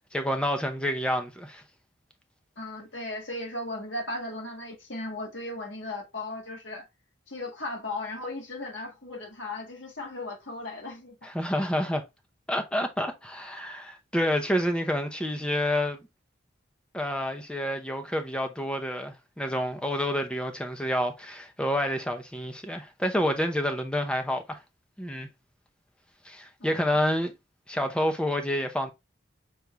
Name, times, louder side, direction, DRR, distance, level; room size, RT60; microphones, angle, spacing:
voice 1, 0.0-1.6 11.2-12.0 12.5-16.0 16.9-24.6 25.0-25.3 26.2-27.3 27.7-28.9, equal, 5° left, 0.7 m, -28 dB
voice 2, 2.6-6.9 7.3-11.2 26.6-26.8, left 2 dB, 85° left, 1.9 m, -36 dB
6.0 x 2.7 x 3.3 m
head